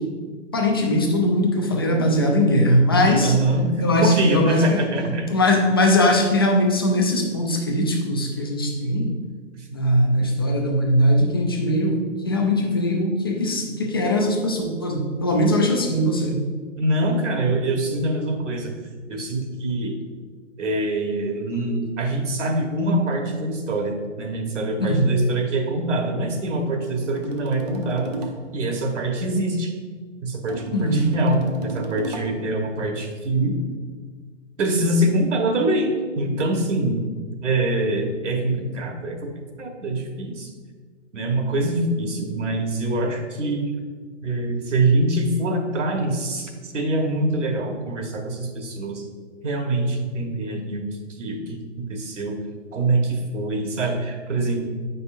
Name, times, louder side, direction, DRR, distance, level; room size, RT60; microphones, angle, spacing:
voice 1, 0.5-3.4 3.8-4.8 5.3-9.1 9.7-16.4 24.8-25.2 30.7-31.1, left 1 dB, 20° left, 1 dB, 0.4 m, -20 dB
voice 2, 3.2-5.3 9.6-9.7 16.8-18.7 19.1-20.0 20.6-28.1 28.5-29.7 30.2-33.6 34.6-37.1 37.4-39.3 39.6-40.5 41.1-43.7 44.2-49.0 49.4-50.9 51.2-52.4 52.7-54.7, right 1 dB, 70° right, 3 dB, 1.2 m, -24 dB
sound 1, 26.5-28.6 30.5-32.5, right 2 dB, 35° right, 0.6 m, -35 dB
7.9 x 5.4 x 2.5 m, 1.5 s
hypercardioid pair, 150°, 37 cm